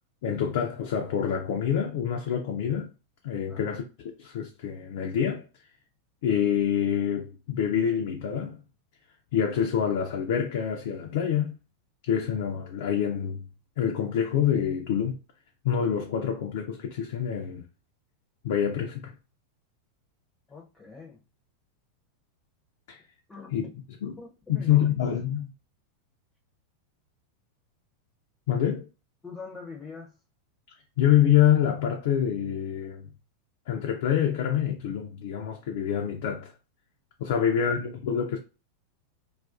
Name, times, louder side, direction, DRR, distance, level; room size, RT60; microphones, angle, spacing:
voice 1, 0.2-2.9 3.2-3.8 4.2-5.5 6.2-8.6 9.3-11.5 12.0-13.5 13.8-15.2 15.6-17.6 18.4-19.1 22.9-23.0 23.5-23.6 24.0-24.2 24.5-25.5 28.5-28.9 31.0-33.1 33.7-36.5 37.2-38.4, left 9 dB, 60° left, 0.4 m, -26 dB
voice 2, 3.5-3.8 20.5-21.2 23.3-23.7 24.2-24.9 29.2-30.2, left 4 dB, 15° left, 0.5 m, -44 dB
2.4 x 2.2 x 2.3 m
hypercardioid pair, 90°, 0 cm